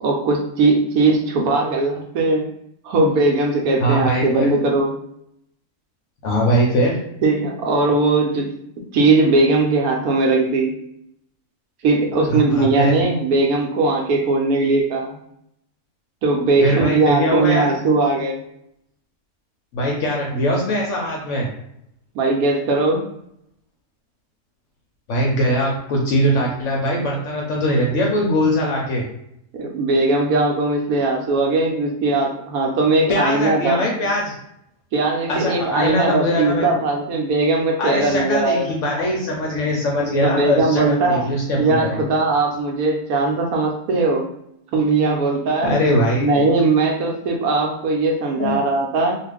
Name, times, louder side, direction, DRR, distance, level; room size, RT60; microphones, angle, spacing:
voice 1, 0.0-2.5 2.8-4.9 7.2-8.5 8.9-10.7 11.8-15.2 16.2-18.4 22.1-23.0 29.5-33.8 34.9-38.7 40.2-41.2 41.6-44.3 44.7-45.8 46.2-49.2, right 3 dB, 75° right, 0 dB, 1.0 m, -19 dB
voice 2, 3.8-4.5 6.2-7.0 12.3-13.0 16.6-17.7 19.7-21.5 25.1-29.0 33.1-34.3 35.3-36.8 37.8-42.0 45.6-46.4 48.4-48.5, equal, 65° left, -2 dB, 0.8 m, -21 dB
2.4 x 2.3 x 3.3 m, 0.76 s
omnidirectional pair, 1.6 m